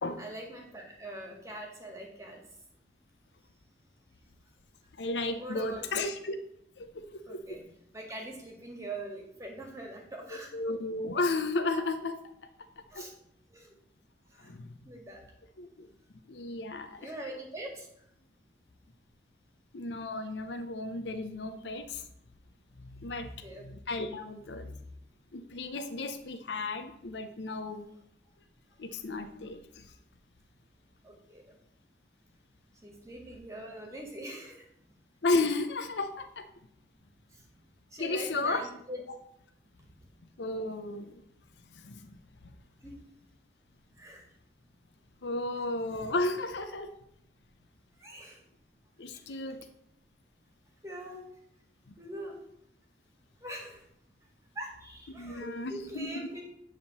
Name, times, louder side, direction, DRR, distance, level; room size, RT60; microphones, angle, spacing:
voice 1, 0.2-2.4 5.4-6.1 7.3-7.6 7.9-10.6 12.9-13.1 13.5-13.7 14.3-14.5 14.8-15.2 17.0-18.1 23.2-23.6 31.0-31.6 32.7-34.7 37.3-37.6 37.9-39.0 39.9-40.1 42.8-42.9 43.9-44.3 45.6-45.7 47.9-48.4 49.0-49.4 50.8-51.3 51.6-51.7 52.0-52.4 53.4-53.9 54.6-56.4, right 1 dB, 15° right, 0 dB, 1.7 m, -43 dB
voice 2, 5.0-6.3 6.8-7.4 10.5-12.2 12.9-13.0 14.4-14.7 15.6-15.9 16.3-17.1 19.7-22.0 23.0-24.8 25.3-27.9 28.8-29.8 35.2-36.4 38.0-38.6 40.4-41.2 41.7-42.2 45.2-46.9 49.0-49.7 51.9-52.0 55.2-56.1, left 2 dB, 85° left, 8 dB, 0.7 m, -33 dB
9.6 x 3.7 x 6.7 m, 0.74 s
head